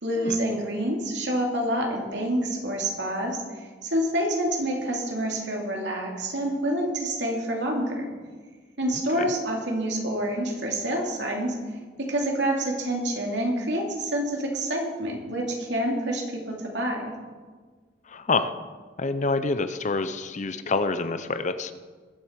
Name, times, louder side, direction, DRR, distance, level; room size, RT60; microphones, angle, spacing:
voice 1, 0.0-8.1 8.8-11.5 12.0-17.1, right 1 dB, 70° right, 0 dB, 2.8 m, -27 dB
voice 2, 18.1-18.5 19.0-21.7, left 3 dB, 40° left, 11 dB, 0.7 m, -27 dB
21.0 x 7.7 x 5.3 m, 1.4 s
head